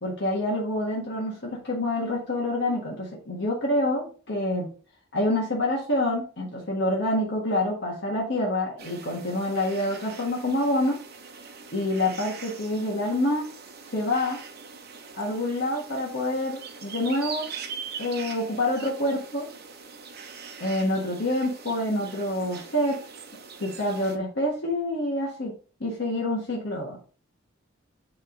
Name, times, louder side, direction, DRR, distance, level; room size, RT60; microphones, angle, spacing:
voice 1, 0.0-4.7 5.1-11.0 11.7-13.5 13.9-14.4 15.1-17.5 18.0-19.5 20.6-23.0 23.6-25.5 25.8-27.0, left 1 dB, 55° left, -3 dB, 1.5 m, -27 dB
sound 1, 8.8-24.2, right 5 dB, 50° right, 1.0 m, -42 dB
8.7 x 3.4 x 3.9 m, 0.38 s
head